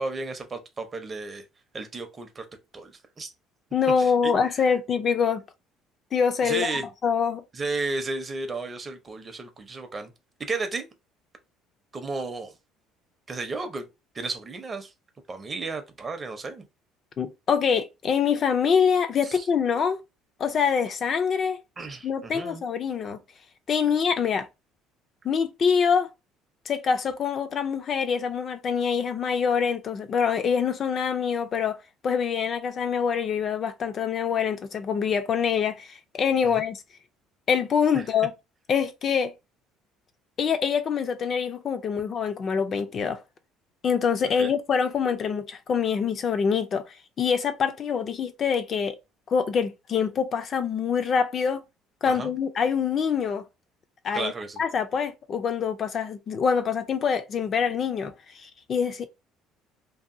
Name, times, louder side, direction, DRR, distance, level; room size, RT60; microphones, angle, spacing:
voice 1, 0.0-1.4 1.7-2.5 2.7-3.3 4.0-4.3 6.4-6.8 7.5-10.1 10.4-10.9 11.9-12.5 13.3-13.9 14.1-14.9 15.3-16.6 19.2-19.5 21.8-22.7 36.4-36.6 37.9-38.0 44.4-44.5 52.1-52.3 54.1-54.6, right 3 dB, 25° right, 0.5 m, -33 dB
voice 2, 3.7-5.4 6.1-6.7 7.0-7.4 17.2-20.0 20.4-21.6 22.0-23.2 23.7-24.5 25.2-26.1 26.7-31.8 32.0-36.8 37.5-38.3 38.7-39.3 40.4-43.2 43.8-46.8 47.2-49.0 49.3-51.6 52.0-53.4 54.0-59.1, left 6 dB, 35° left, 0.3 m, -25 dB
2.7 x 2.5 x 2.5 m
cardioid pair, 145°, 0 cm